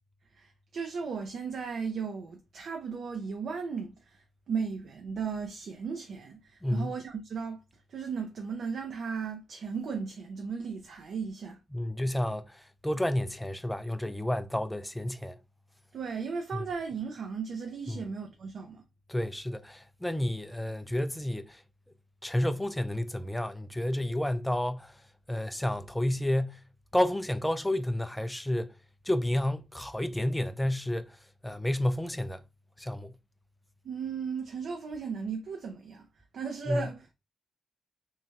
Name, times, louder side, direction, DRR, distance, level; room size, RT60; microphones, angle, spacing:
voice 1, 0.3-11.6 15.9-18.8 33.8-37.1, right 5 dB, 70° right, 0.5 m, -36 dB
voice 2, 6.6-6.9 11.7-15.4 17.9-18.0 19.1-21.6 22.2-25.0 25.3-26.6 26.9-28.7 29.1-31.2 31.4-32.4 32.8-33.1 36.7-36.8, left 1 dB, 5° left, 0.3 m, -30 dB
3.1 x 2.2 x 2.7 m
cardioid pair, 90°, 0 cm